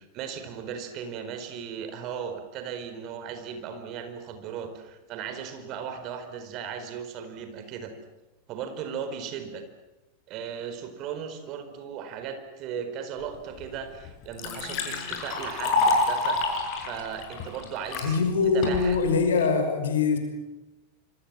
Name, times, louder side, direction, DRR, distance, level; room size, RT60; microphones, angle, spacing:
voice 1, 0.0-7.9 8.5-9.6 10.3-16.4 16.8-19.0, right 7 dB, 40° right, 8 dB, 4.3 m, -37 dB
Liquid, 13.6-13.7 14.0-18.1 18.6-19.1, left 3 dB, 40° left, 6.7 m, -27 dB
voice 2, 18.0-20.2, left 5 dB, 65° left, 6 dB, 5.8 m, -23 dB
27.0 x 26.5 x 7.6 m, 1.0 s
figure-of-eight pair, 90°, 0 cm